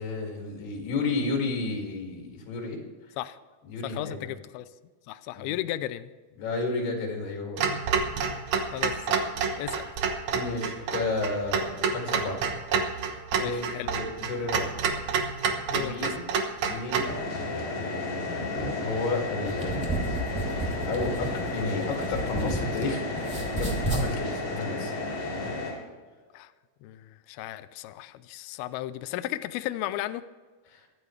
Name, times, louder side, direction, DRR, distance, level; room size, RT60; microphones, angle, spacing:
voice 1, 0.0-2.8 3.6-4.2 5.4-5.5 6.4-7.7 8.3-8.5 8.9-9.0 10.3-12.4 13.3-14.7 15.8-16.3 16.6-17.1 17.7-24.9 30.7-30.9, left 3 dB, 65° left, 1 dB, 4.3 m, -32 dB
voice 2, 3.8-4.7 5.1-6.1 8.7-9.3 9.6-9.9 13.3-13.9 15.7-16.1 26.3-26.5 26.8-30.2, left 14 dB, 90° left, 13 dB, 2.1 m, -35 dB
Clock, 7.6-17.1, right 6 dB, 80° right, 1.6 m, -29 dB
sound 1, 17.0-25.7, left 2 dB, 30° left, 4.2 m, -33 dB
sound 2, 19.3-22.9 23.2-24.1, right 2 dB, ahead, 1.9 m, -32 dB
23.0 x 10.5 x 3.2 m, 1.4 s
omnidirectional pair, 5.0 m